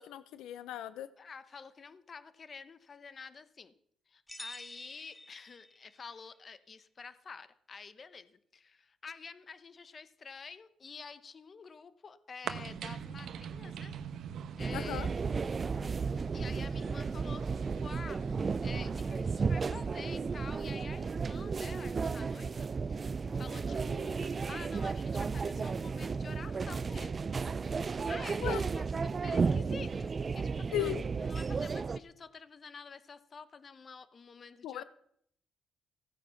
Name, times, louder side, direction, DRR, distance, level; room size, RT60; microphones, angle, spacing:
voice 1, 0.0-1.1 14.7-15.1 28.4-28.6 30.7-31.0 34.6-34.8, left 13 dB, 90° left, 14 dB, 0.5 m, -36 dB
voice 2, 1.2-3.7 4.1-13.9 14.6-15.1 16.3-18.2 18.6-27.3 28.1-34.8, left 5 dB, 40° left, 14 dB, 0.9 m, -49 dB
sound 1, 4.3-6.1, left 1 dB, 10° left, 0.6 m, -48 dB
sound 2, 12.4-20.5, right 8 dB, 70° right, 1.0 m, -45 dB
sound 3, 14.6-32.0, right 5 dB, 35° right, 0.5 m, -33 dB
15.5 x 8.9 x 5.7 m, 0.69 s
cardioid pair, 90°, 0 cm